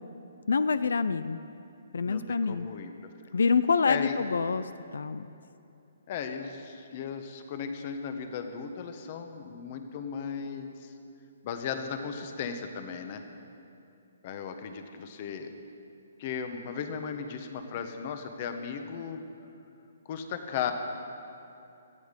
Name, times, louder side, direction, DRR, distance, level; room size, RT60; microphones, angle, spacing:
voice 1, 0.5-1.4 1.9-2.7 3.3-5.3, left 5 dB, 90° left, 13 dB, 0.5 m, -26 dB
voice 2, 2.0-2.9 3.9-4.1 6.1-10.9 11.4-13.2 14.2-15.5 16.2-19.2 20.1-20.7, left 7 dB, 30° left, 7 dB, 1.1 m, -36 dB
18.0 x 13.0 x 5.2 m, 2.7 s
hypercardioid pair, 170°, 0 cm